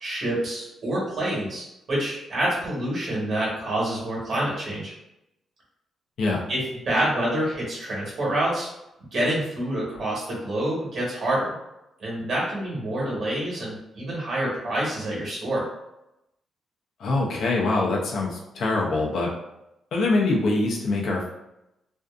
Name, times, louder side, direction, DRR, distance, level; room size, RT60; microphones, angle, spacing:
voice 1, 0.0-4.9 6.5-8.7 9.1-11.5 12.0-15.6, right 1 dB, 50° right, -5 dB, 1.2 m, -27 dB
voice 2, 17.0-19.3 19.9-21.3, left 2 dB, 65° left, -2 dB, 0.5 m, -24 dB
2.5 x 2.4 x 2.3 m, 0.89 s
cardioid pair, 140°, 0 cm